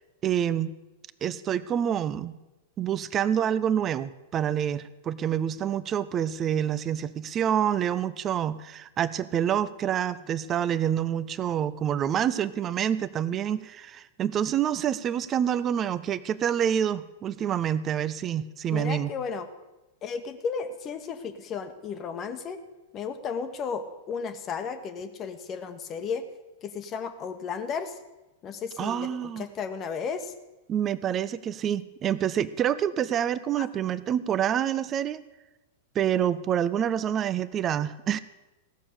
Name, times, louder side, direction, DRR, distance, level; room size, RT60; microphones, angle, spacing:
voice 1, 0.2-0.8 1.2-2.3 2.8-19.1 28.8-29.4 30.7-35.2 35.9-38.2, right 9 dB, 25° right, 16 dB, 0.6 m, -27 dB
voice 2, 18.7-19.5 20.0-22.6 22.9-26.2 26.6-28.0 28.4-29.1 29.4-30.3 33.6-33.7, left 6 dB, 30° left, 9 dB, 1.2 m, -34 dB
16.0 x 7.0 x 8.5 m, 1.1 s
figure-of-eight pair, 95°, 0 cm